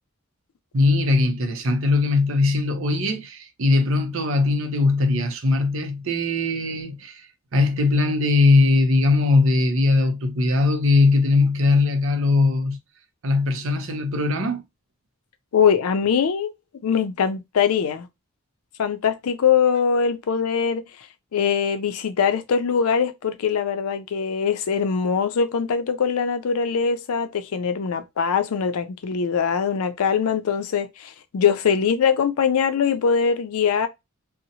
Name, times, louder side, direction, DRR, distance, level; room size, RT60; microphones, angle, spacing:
voice 1, 0.7-7.3 7.5-12.8 13.2-14.6, left 3 dB, 65° right, 0.6 m, -20 dB
voice 2, 15.5-16.5 16.8-18.1 18.8-20.8 21.3-33.9, left 6 dB, 85° left, 0.4 m, -22 dB
2.7 x 2.0 x 2.7 m
head